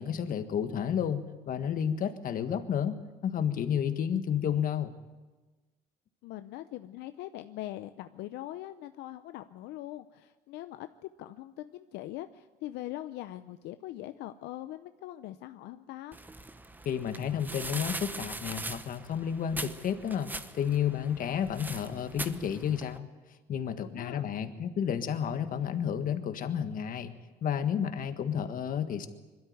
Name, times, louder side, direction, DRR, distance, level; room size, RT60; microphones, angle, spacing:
voice 1, 0.0-3.0 3.2-4.9 16.8-23.1 23.5-27.1 27.4-29.1, left 8 dB, 55° left, 9 dB, 1.6 m, -31 dB
voice 2, 6.2-16.2 23.8-24.3, left 14 dB, 85° left, 10 dB, 0.6 m, -42 dB
sound 1, 16.1-23.0, right 2 dB, 10° right, 0.9 m, -41 dB
21.5 x 13.0 x 9.5 m, 1.2 s
cardioid pair, 110°, 17 cm